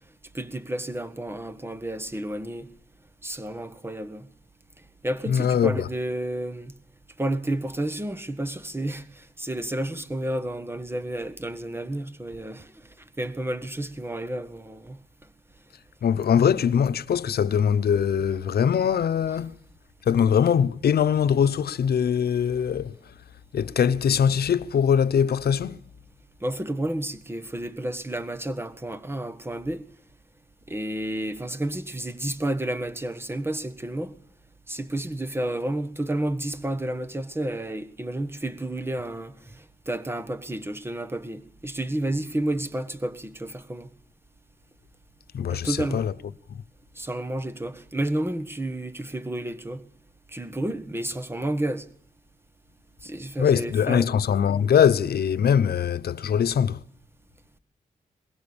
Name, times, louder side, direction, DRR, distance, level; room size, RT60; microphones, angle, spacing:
voice 1, 0.3-2.7 3.2-4.3 5.0-6.7 7.2-12.7 13.2-15.0 26.4-29.8 30.7-34.1 34.7-43.9 45.5-46.1 47.0-49.8 50.3-51.8 53.0-54.1, right 1 dB, 15° right, 1.5 m, -31 dB
voice 2, 5.3-5.9 16.0-19.6 20.1-23.0 23.5-25.8 45.3-46.1 46.5-46.6 53.4-56.8, left 8 dB, 85° left, 0.9 m, -22 dB
23.5 x 21.5 x 7.2 m
wide cardioid pair, 110°, 16 cm